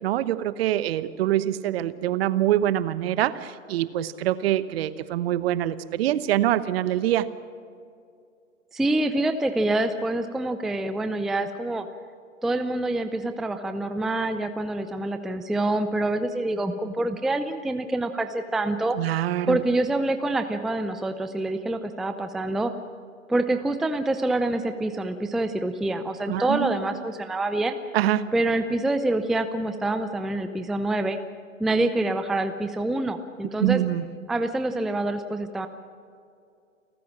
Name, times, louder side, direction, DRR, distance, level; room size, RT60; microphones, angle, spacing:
voice 1, 0.0-7.3 19.0-19.6 26.3-27.0 27.9-28.3 33.6-34.1, right 13 dB, 50° right, 15 dB, 1.1 m, -25 dB
voice 2, 8.7-11.9 12.4-19.0 19.5-22.7 23.3-27.8 28.3-31.2 31.6-33.8 34.3-35.7, right 2 dB, ahead, 9 dB, 0.5 m, -26 dB
29.5 x 14.0 x 7.3 m, 2.4 s
figure-of-eight pair, 110°, 39 cm